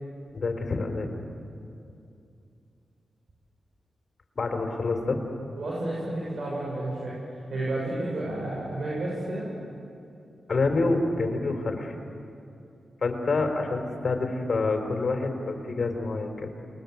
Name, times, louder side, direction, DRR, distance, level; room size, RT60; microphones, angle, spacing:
voice 1, 0.3-1.2 4.4-5.2 10.5-12.0 13.0-16.5, left 3 dB, 60° left, 4 dB, 3.9 m, -27 dB
voice 2, 5.6-7.2 7.5-9.5, right 1 dB, 65° right, -5 dB, 7.4 m, -31 dB
29.0 x 21.0 x 8.1 m, 2.6 s
supercardioid pair, 45°, 0 cm